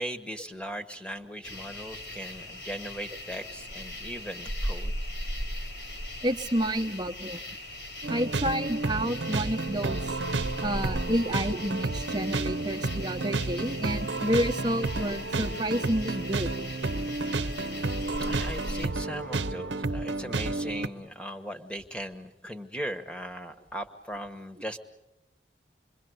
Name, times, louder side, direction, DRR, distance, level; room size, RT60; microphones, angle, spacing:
voice 1, 0.0-4.9 18.2-24.8, equal, 5° left, 7 dB, 1.3 m, -38 dB
sound 1, 1.4-18.9, left 1 dB, 80° left, 4.3 m, -39 dB
voice 2, 6.2-7.4 8.1-10.2 10.6-16.5, equal, 25° right, 7 dB, 1.0 m, -29 dB
sound 2, 8.0-20.9, right 3 dB, 90° right, 0.9 m, -31 dB
27.5 x 22.5 x 7.9 m, 0.92 s
head